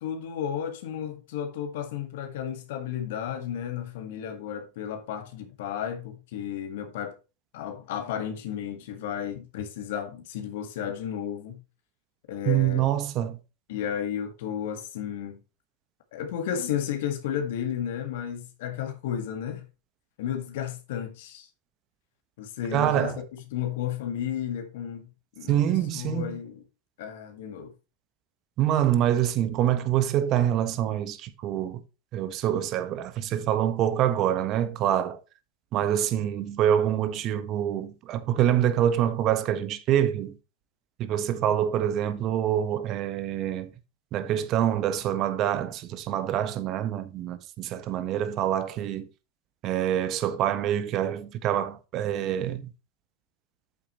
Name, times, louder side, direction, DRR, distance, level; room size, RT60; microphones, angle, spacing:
voice 1, 0.0-7.2 7.5-11.6 12.3-12.9 13.7-15.4 16.1-19.6 20.2-21.5 22.4-25.1 25.4-26.6 27.0-27.7, left 9 dB, 70° left, 1.8 m, -33 dB
voice 2, 12.4-13.4 22.7-23.2 25.5-26.4 28.6-31.8 32.1-35.2 35.7-40.3 41.0-43.7 44.1-49.1 49.6-52.7, right 11 dB, 45° right, 1.3 m, -26 dB
8.5 x 7.7 x 3.1 m
hypercardioid pair, 90°, 0 cm